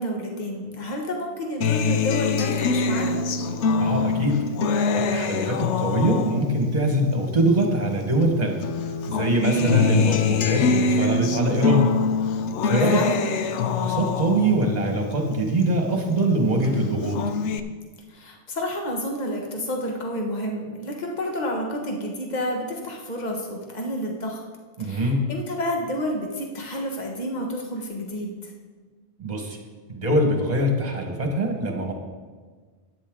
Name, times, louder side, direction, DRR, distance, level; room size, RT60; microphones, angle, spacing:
voice 1, 0.0-3.3 9.5-10.2 12.9-13.3 18.1-24.4 24.8-28.5, equal, 40° left, 1 dB, 1.6 m, -29 dB
Acoustic guitar, 1.6-8.3 8.6-16.2 16.6-17.6, left 5 dB, 85° left, 1.0 m, -25 dB
voice 2, 3.8-4.4 5.1-8.6 9.1-12.0 12.6-13.0 13.8-17.2 24.8-25.2 29.2-29.6 29.9-31.9, right 1 dB, 35° right, 2 dB, 1.7 m, -23 dB
13.0 x 9.6 x 3.8 m, 1.5 s
omnidirectional pair, 1.2 m